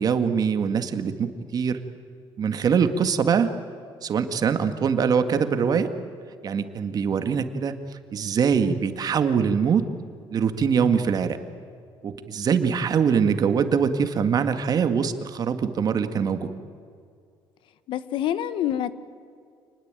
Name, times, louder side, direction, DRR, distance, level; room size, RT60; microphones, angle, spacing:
voice 1, 0.0-1.8 2.4-3.5 4.0-5.9 6.4-7.7 8.1-9.9 10.3-11.4 12.0-16.5, right 6 dB, 45° right, 8 dB, 1.9 m, -23 dB
voice 2, 17.9-18.9, left 11 dB, 70° left, 14 dB, 1.2 m, -27 dB
28.5 x 20.0 x 9.1 m, 2.3 s
cardioid pair, 120°, 9 cm